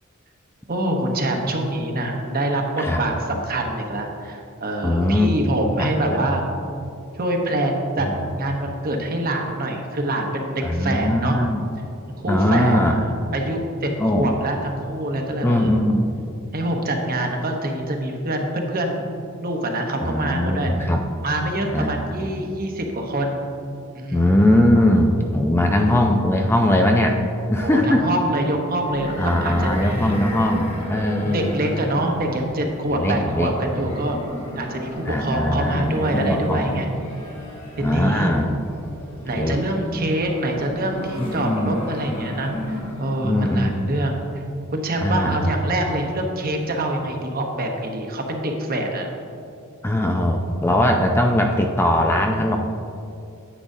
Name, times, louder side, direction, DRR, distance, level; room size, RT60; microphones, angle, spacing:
voice 1, 0.7-6.4 7.1-8.1 8.4-11.4 12.2-13.9 14.1-15.8 16.5-19.1 19.4-20.9 21.2-23.4 23.9-24.3 25.7-26.0 27.6-30.2 31.2-34.2 34.6-36.9 37.8-38.5 39.2-44.2 44.7-49.1, right 1 dB, 45° right, 2 dB, 0.9 m, -25 dB
voice 2, 4.8-5.3 5.8-6.3 8.0-8.1 10.6-11.6 12.3-13.0 14.0-14.3 15.4-16.1 20.0-21.0 21.7-22.3 24.1-27.2 27.5-28.0 29.2-31.6 33.0-33.5 35.1-36.8 37.8-38.5 39.4-39.6 41.2-41.8 43.2-44.0 45.0-45.5 49.8-52.6, left 1 dB, 10° left, 2 dB, 0.4 m, -20 dB
sound 1, 28.8-43.3, left 1 dB, 25° left, 1.4 m, -34 dB
9.9 x 8.5 x 2.7 m, 2.6 s
head